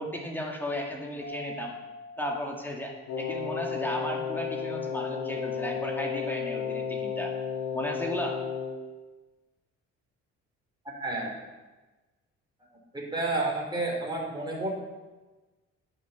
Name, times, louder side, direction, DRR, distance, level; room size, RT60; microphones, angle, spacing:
voice 1, 0.0-1.7 2.2-7.3 7.7-8.4, equal, 5° left, 0 dB, 2.2 m, -34 dB
Mallet percussion, 1.2-3.7, left 2 dB, 40° left, 2.8 m, -46 dB
Wind instrument woodwind instrument, 3.1-8.8, left 7 dB, 65° left, 2.0 m, -33 dB
voice 2, 10.9-11.3 12.9-14.8, right 2 dB, 15° right, -1 dB, 3.2 m, -30 dB
9.3 x 6.8 x 7.0 m, 1.2 s
cardioid pair, 90°, 30 cm